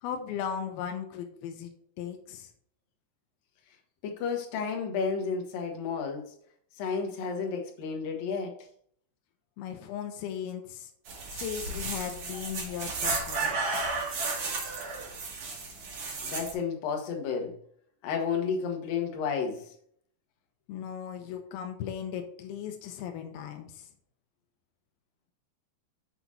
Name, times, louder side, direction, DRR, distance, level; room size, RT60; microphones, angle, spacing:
voice 1, 0.0-2.5 9.6-10.9 11.3-13.7 20.7-23.9, left 8 dB, 90° left, 2.2 m, -37 dB
voice 2, 4.0-6.3 6.8-8.5 16.2-17.6 18.0-19.7, left 6 dB, 65° left, 2.5 m, -31 dB
sound 1, 11.1-16.5, right 3 dB, 50° right, 3.0 m, -33 dB
7.5 x 5.9 x 4.1 m
omnidirectional pair, 5.5 m